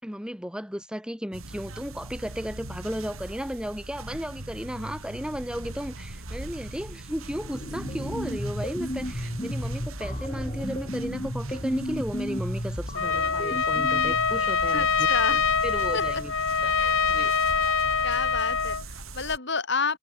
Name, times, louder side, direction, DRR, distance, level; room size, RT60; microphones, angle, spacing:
voice 1, 0.0-16.3 16.6-16.8 17.1-17.3, equal, 5° right, 5.5 m, -35 dB
sound 1, 1.3-19.4, right 2 dB, 85° right, 3.3 m, -40 dB
sound 2, 7.3-14.4, equal, 30° left, 7.3 m, -33 dB
Trumpet, 12.9-18.8, left 5 dB, 70° left, 3.5 m, -24 dB
voice 2, 14.7-15.4 15.9-16.0 16.8-17.1 18.0-20.0, left 4 dB, 55° left, 4.2 m, -30 dB
head